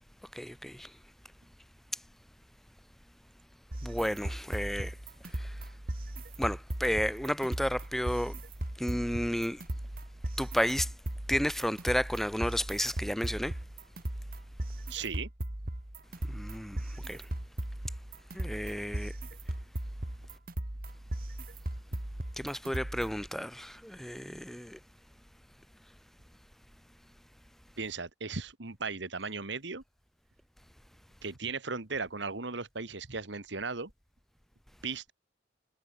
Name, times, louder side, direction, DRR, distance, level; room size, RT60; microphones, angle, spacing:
voice 1, 0.4-0.7 3.8-4.9 6.4-8.3 8.8-9.6 10.4-10.9 11.3-13.5 16.3-16.8 17.1-17.2 18.4-19.1 22.4-24.8, equal, ahead, 0.7 m, -32 dB
sound 1, 3.7-23.3, right 1 dB, 50° right, 2.2 m, -38 dB
voice 2, 14.9-15.3 27.8-29.8 31.2-33.9 34.8-35.1, right 4 dB, 70° right, 1.8 m, -36 dB
head